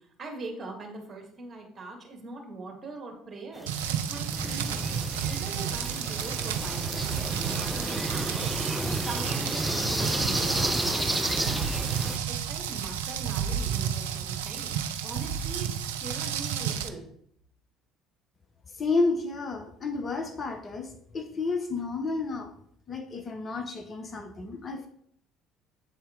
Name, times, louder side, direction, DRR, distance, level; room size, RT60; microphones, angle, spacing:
voice 1, 0.2-4.8 5.3-8.5 9.0-11.8 12.3-15.7 16.0-17.0, right 3 dB, 35° right, 1 dB, 1.9 m, -41 dB
sound 1, 3.6-12.2, right 1 dB, 5° right, 0.7 m, -31 dB
Rain, 3.7-16.9, right 8 dB, 75° right, 0.4 m, -31 dB
voice 2, 18.8-22.5 22.9-24.9, left 3 dB, 35° left, 5 dB, 0.8 m, -31 dB
7.9 x 4.2 x 3.7 m, 0.66 s
figure-of-eight pair, 55°, 0 cm